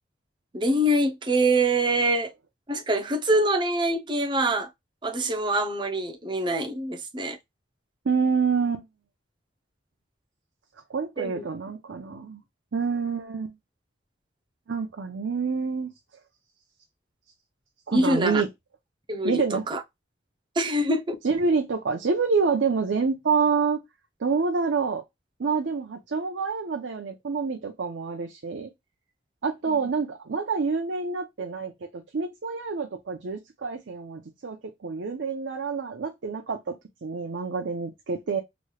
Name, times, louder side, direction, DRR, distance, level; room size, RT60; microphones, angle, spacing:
voice 1, 0.5-2.3 2.7-4.7 5.0-7.4 11.2-11.4 17.9-18.4 19.1-19.8 20.6-21.2 29.7-29.9, right 1 dB, 25° right, 0.5 m, -25 dB
voice 2, 8.1-8.8 10.9-12.4 12.7-13.5 14.7-15.9 17.9-18.5 19.2-19.6 21.2-23.8 24.2-25.0 25.4-28.7 29.4-34.6 34.8-38.4, right 5 dB, 80° right, 0.6 m, -27 dB
3.1 x 3.0 x 2.2 m
head